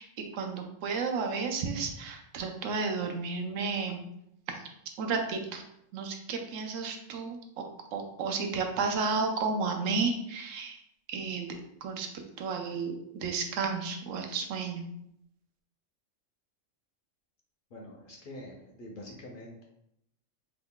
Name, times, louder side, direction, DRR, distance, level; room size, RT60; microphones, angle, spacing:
voice 1, 0.0-4.0 4.5-4.6 5.0-5.6 5.9-7.6 7.9-10.8 11.1-12.1 12.4-14.9, right 4 dB, 80° right, 4 dB, 0.9 m, -32 dB
voice 2, 17.7-19.6, left 1 dB, 55° left, -1 dB, 0.7 m, -45 dB
3.0 x 2.4 x 3.6 m, 0.77 s
omnidirectional pair, 1.3 m